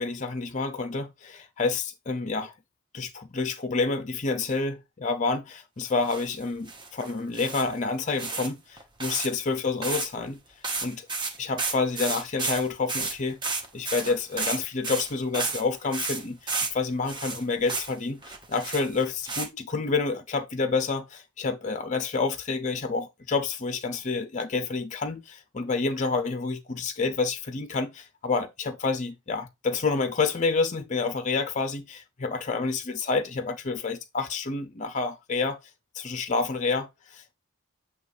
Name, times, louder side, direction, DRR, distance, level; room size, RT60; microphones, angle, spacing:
voice 1, 0.0-2.5 2.9-10.4 10.8-11.1 11.4-35.6 35.9-37.3, left 4 dB, 35° left, 0.5 m, -29 dB
sound 1, 6.0-6.3 6.7-7.7 8.2-8.5 8.8-9.3 9.8-10.1 10.3-10.4 10.6-15.6 15.9-16.7 17.1-17.9 18.2-19.5, right 4 dB, 20° right, 0.9 m, -32 dB
7.9 x 2.9 x 4.8 m
head